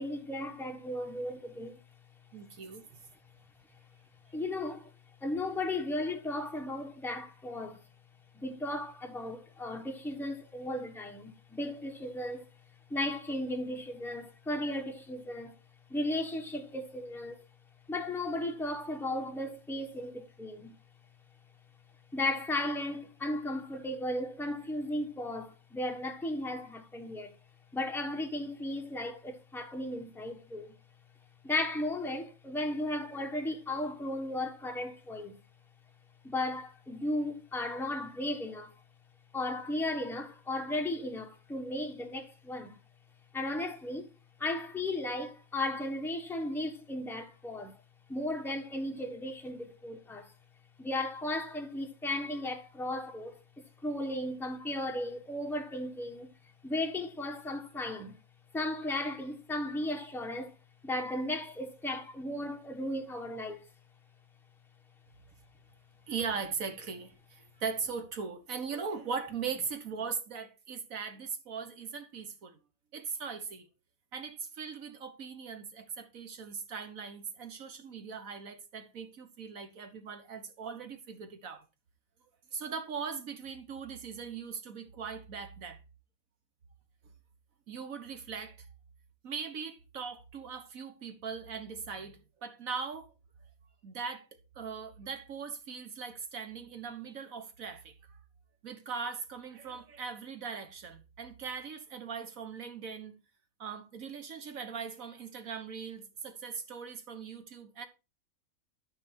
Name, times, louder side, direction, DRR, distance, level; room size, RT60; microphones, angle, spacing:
voice 1, 0.0-1.8 4.3-4.9 5.2-7.8 8.3-12.5 12.9-15.5 15.9-17.4 17.9-20.7 22.1-27.3 27.7-30.7 31.4-35.4 36.2-38.7 39.3-42.8 43.3-44.1 44.4-47.8 48.1-50.3 50.8-56.3 56.6-58.2 58.5-60.5 60.8-63.6, left 1 dB, ahead, 1.2 m, -35 dB
voice 2, 2.3-3.0 66.1-72.6 72.9-73.7 74.1-81.7 82.5-85.8 87.7-88.7 89.2-93.1 93.8-94.3 94.6-98.2 98.6-103.2 103.6-107.9, right 5 dB, 75° right, 1.8 m, -40 dB
13.0 x 5.2 x 4.4 m
omnidirectional pair, 1.5 m